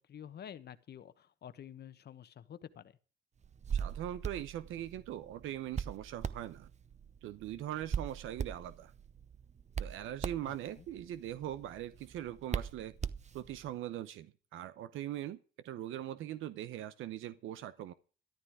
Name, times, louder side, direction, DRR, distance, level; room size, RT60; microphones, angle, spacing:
voice 1, 0.0-3.0 10.4-10.9, left 9 dB, 55° left, 1.2 m, -50 dB
Hands, 3.4-13.7, right 7 dB, 35° right, 0.9 m, -41 dB
voice 2, 3.7-6.7 7.2-8.9 9.8-12.9 13.3-15.4 15.6-17.9, right 12 dB, 85° right, 0.8 m, -41 dB
13.5 x 11.5 x 4.9 m
cardioid pair, 90°, 20 cm